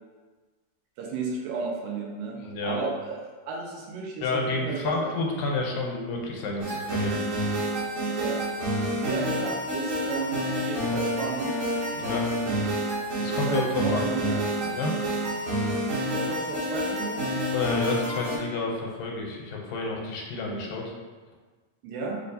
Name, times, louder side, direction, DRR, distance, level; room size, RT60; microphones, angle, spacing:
voice 1, 1.0-3.2 3.5-5.1 8.2-8.4 9.0-11.6 13.5-14.4 16.1-17.3 21.8-22.2, right 4 dB, 85° right, -1 dB, 2.3 m, -33 dB
voice 2, 2.4-2.8 4.2-7.2 11.9-12.3 13.2-14.2 14.7-14.9 17.5-20.9, left 3 dB, 85° left, 0 dB, 2.2 m, -30 dB
sound 1, 6.6-18.4, equal, 65° right, 2.3 m, -28 dB
6.6 x 2.4 x 2.6 m, 1.3 s
omnidirectional pair, 3.9 m